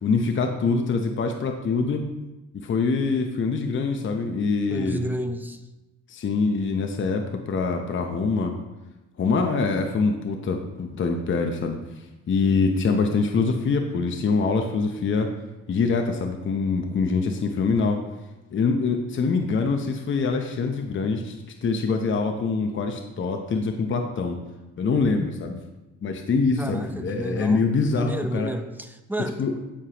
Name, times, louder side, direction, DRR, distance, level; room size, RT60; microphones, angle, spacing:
voice 1, 0.0-2.0 2.5-5.0 6.1-8.5 9.2-11.8 12.3-15.3 15.7-18.0 18.5-21.4 21.6-24.4 24.8-25.6 26.0-28.5 29.4-29.5, left 4 dB, 40° left, 4 dB, 0.8 m, -24 dB
voice 2, 4.7-5.6 26.6-27.7 27.9-29.4, right 1 dB, 5° right, 7 dB, 0.7 m, -31 dB
12.5 x 5.0 x 2.9 m, 1.0 s
cardioid pair, 90°, 30 cm